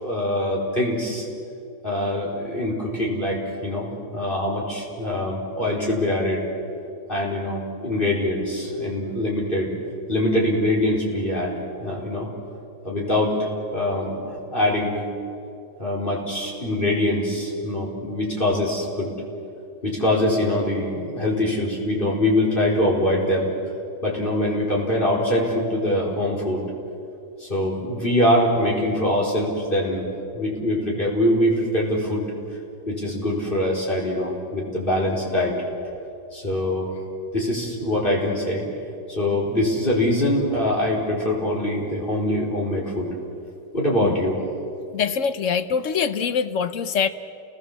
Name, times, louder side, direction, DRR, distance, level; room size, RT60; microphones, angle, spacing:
voice 1, 0.0-1.2 1.8-6.4 7.1-9.7 10.1-12.3 12.8-15.0 15.8-19.1 19.8-23.5 24.0-26.6 27.4-30.1 30.3-32.2 32.9-35.5 36.3-36.9 37.3-38.6 39.1-43.1 43.7-44.4, left 1 dB, 30° left, -3 dB, 4.9 m, -23 dB
voice 2, 44.9-47.1, left 6 dB, 55° left, 12 dB, 1.0 m, -24 dB
29.5 x 20.0 x 7.3 m, 2.6 s
omnidirectional pair, 1.8 m